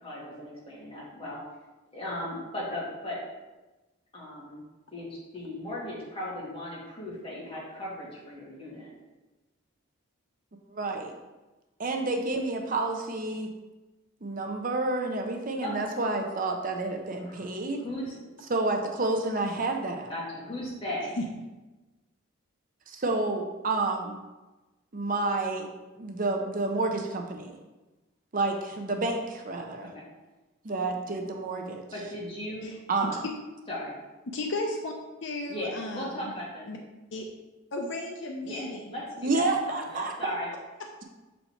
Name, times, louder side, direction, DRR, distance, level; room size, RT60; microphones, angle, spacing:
voice 1, 0.0-1.4 1.9-3.2 4.1-4.6 4.9-8.9 15.6-15.7 17.2-17.5 17.8-18.2 20.1-21.2 29.9-30.0 31.9-32.7 33.7-34.0 35.5-36.7 38.4-40.5, left 1 dB, 25° left, -7 dB, 2.3 m, -37 dB
voice 2, 10.7-11.2 11.8-13.5 14.2-17.8 18.5-20.1 22.9-24.2 24.9-25.7 26.0-27.6 28.3-29.9 30.6-31.8 32.9-33.2 39.2-40.3, right 2 dB, 40° right, 3 dB, 0.6 m, -29 dB
voice 3, 34.3-34.9 35.2-36.3 36.7-36.8 37.1-37.2 37.7-39.0, left 2 dB, 60° left, 2 dB, 0.7 m, -34 dB
6.7 x 4.2 x 4.4 m, 1.1 s
head